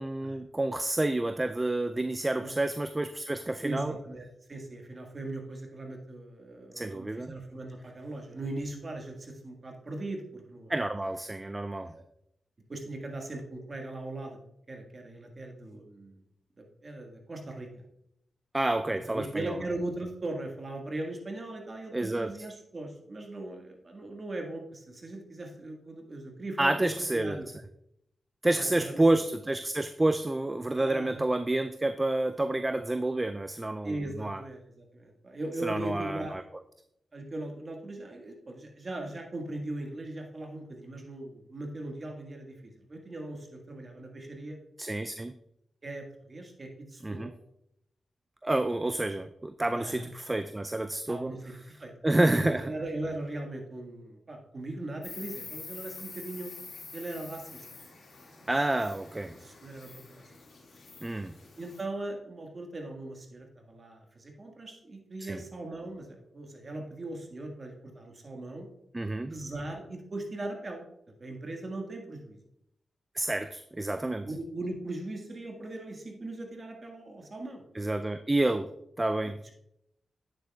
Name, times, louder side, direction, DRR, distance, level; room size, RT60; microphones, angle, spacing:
voice 1, 0.0-3.9 6.7-7.3 10.7-11.9 18.5-19.6 21.9-22.3 26.6-27.4 28.4-34.4 35.6-36.4 44.8-45.3 47.0-47.3 48.4-51.3 52.0-52.7 58.5-59.4 61.0-61.3 65.2-65.4 68.9-69.3 73.1-74.3 77.7-78.7 79.0-79.4, right 2 dB, 25° right, 10 dB, 0.4 m, -29 dB
voice 2, 3.6-10.7 11.9-12.1 12.7-14.4 14.7-16.2 16.6-17.7 19.1-26.7 27.1-27.5 28.5-29.0 30.7-31.3 33.8-36.4 37.1-44.6 45.8-47.3 49.7-50.0 51.1-56.5 56.9-57.6 59.3-60.2 61.6-68.7 69.3-70.8 71.2-72.4 74.2-77.6, right 2 dB, 45° right, 2 dB, 1.7 m, -39 dB
Insect, 55.0-61.8, left 4 dB, 70° left, 2.1 m, -47 dB
8.9 x 7.5 x 2.3 m, 0.77 s
supercardioid pair, 45°, 0 cm